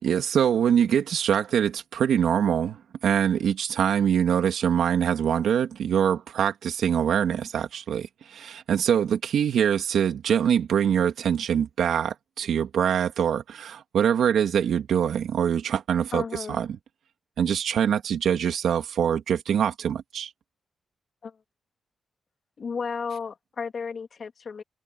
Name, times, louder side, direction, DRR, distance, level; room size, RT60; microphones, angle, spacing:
voice 1, 0.0-16.7 17.4-20.3, right 8 dB, 85° right, 2.9 m, -24 dB
voice 2, 16.1-16.6 21.2-21.4 22.6-24.6, left 5 dB, 50° left, 3.1 m, -33 dB
wide cardioid pair, 120°, 0 cm